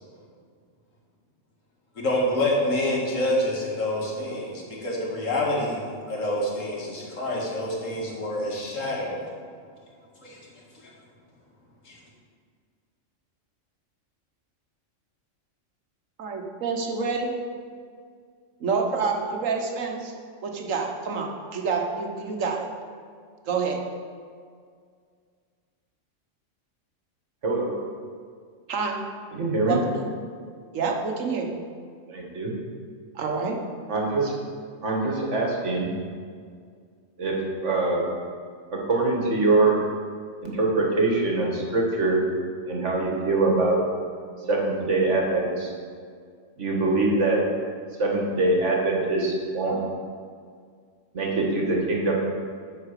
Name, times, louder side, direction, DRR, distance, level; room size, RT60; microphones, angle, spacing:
voice 1, 2.0-5.8 6.1-9.3 10.2-10.4 11.9-12.0, left 1 dB, 85° left, -3 dB, 2.2 m, -27 dB
voice 2, 16.2-17.3 18.6-20.1 20.4-22.7 23.5-23.8 28.7-29.0 29.7-30.1 30.7-31.6 33.1-33.6, right 4 dB, 90° right, 2 dB, 1.4 m, -27 dB
voice 3, 27.4-27.7 29.3-29.8 32.1-32.5 33.9-34.3 34.8-35.9 37.2-37.4 37.6-38.0 38.7-39.8 40.4-42.2 42.7-43.8 44.5-45.7 46.6-47.4 48.0-49.7 51.1-52.1, right 2 dB, 70° right, -1 dB, 1.9 m, -23 dB
9.5 x 4.7 x 6.6 m, 2.1 s
omnidirectional pair, 1.3 m